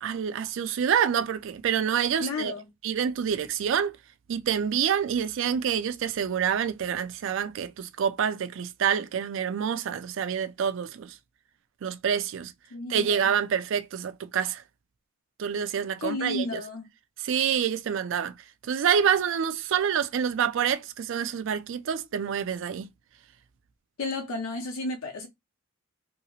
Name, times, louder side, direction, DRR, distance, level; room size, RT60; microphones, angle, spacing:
voice 1, 0.0-2.5 2.8-3.9 4.3-11.2 11.8-12.5 12.9-14.6 15.4-16.6 17.2-18.3 18.6-22.9, right 8 dB, 65° right, 0.3 m, -27 dB
voice 2, 2.2-2.7 12.7-13.3 16.0-16.8 24.0-25.3, left 2 dB, 80° left, 0.6 m, -32 dB
2.7 x 2.4 x 2.8 m
head